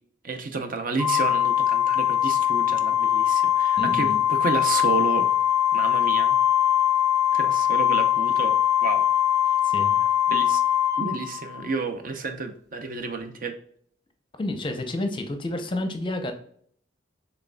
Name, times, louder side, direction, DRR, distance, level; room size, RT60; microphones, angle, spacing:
voice 1, 0.2-5.3 5.7-6.4 7.3-8.6 8.8-9.0 10.3-10.6 11.0-13.6, right 4 dB, 45° right, 7 dB, 0.6 m, -30 dB
Organ, 1.0-11.7, left 10 dB, 15° right, 1.0 m, -22 dB
voice 2, 3.8-4.2 9.6-10.0 14.4-16.3, left 2 dB, 25° left, 6 dB, 0.6 m, -30 dB
6.4 x 3.4 x 2.2 m, 0.62 s
head